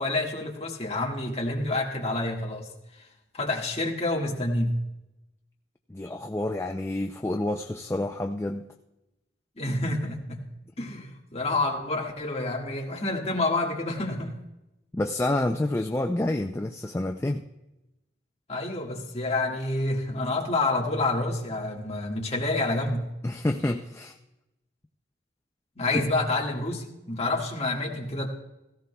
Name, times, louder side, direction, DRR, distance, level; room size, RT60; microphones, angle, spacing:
voice 1, 0.0-2.7 3.3-4.8 9.6-10.4 10.8-14.4 18.5-23.1 25.8-28.3, left 2 dB, 30° left, -1 dB, 1.7 m, -28 dB
voice 2, 5.9-8.7 14.9-17.4 23.2-24.2 25.9-26.0, left 1 dB, 15° left, 4 dB, 0.3 m, -28 dB
17.0 x 15.5 x 2.3 m, 0.94 s
head